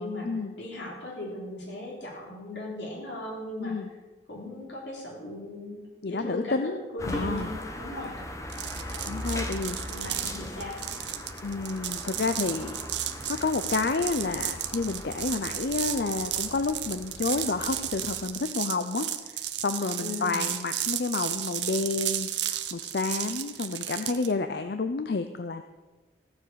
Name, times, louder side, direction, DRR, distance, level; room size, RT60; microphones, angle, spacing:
voice 1, 0.6-3.8 4.3-5.8 6.1-8.2 9.9-10.8 20.0-20.4, left 1 dB, 80° left, -2 dB, 3.7 m, -37 dB
voice 2, 6.0-7.5 9.0-9.8 11.4-12.8 13.3-25.6, left 3 dB, 60° left, 9 dB, 0.5 m, -30 dB
sound 1, 7.0-18.3, left 1 dB, 15° left, 1.1 m, -39 dB
sound 2, 8.5-24.3, right 12 dB, 75° right, 0.8 m, -33 dB
15.5 x 7.2 x 6.3 m, 1.2 s
head